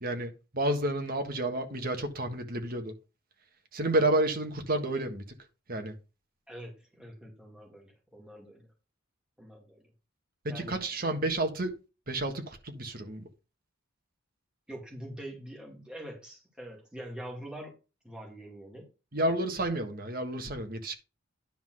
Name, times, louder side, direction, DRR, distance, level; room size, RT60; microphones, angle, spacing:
voice 1, 0.0-2.9 3.7-5.2 5.7-5.9 10.4-11.8 12.1-13.2 19.1-20.9, right 1 dB, 45° right, 1.5 m, -30 dB
voice 2, 6.5-8.7 9.4-9.8 10.5-10.8 14.7-17.8 18.0-18.9, right 1 dB, 5° right, 2.3 m, -44 dB
10.5 x 3.8 x 6.3 m
head